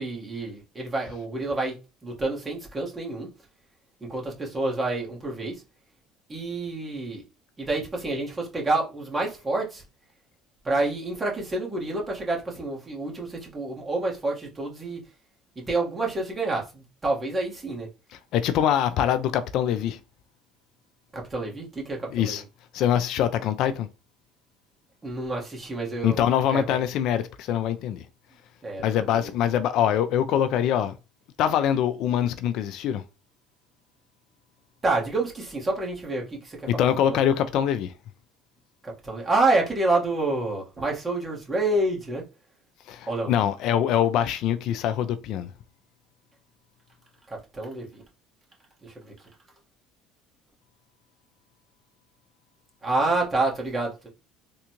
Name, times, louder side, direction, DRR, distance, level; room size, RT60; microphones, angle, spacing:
voice 1, 0.0-1.8 2.0-3.3 4.0-5.6 6.3-7.2 7.6-9.8 10.6-15.0 15.7-17.9 21.1-22.4 25.0-26.2 26.5-26.8 28.6-29.3 34.8-37.2 38.8-42.2 43.1-43.3 47.3-48.0 48.8-49.1 52.8-54.1, right 2 dB, 25° right, 1.4 m, -28 dB
voice 2, 18.3-20.0 22.1-22.4 22.7-23.9 26.0-28.0 28.8-31.0 31.4-33.0 36.7-37.9 42.9-45.5, left 10 dB, 65° left, 0.3 m, -24 dB
3.6 x 2.3 x 3.0 m
supercardioid pair, 95°, 0 cm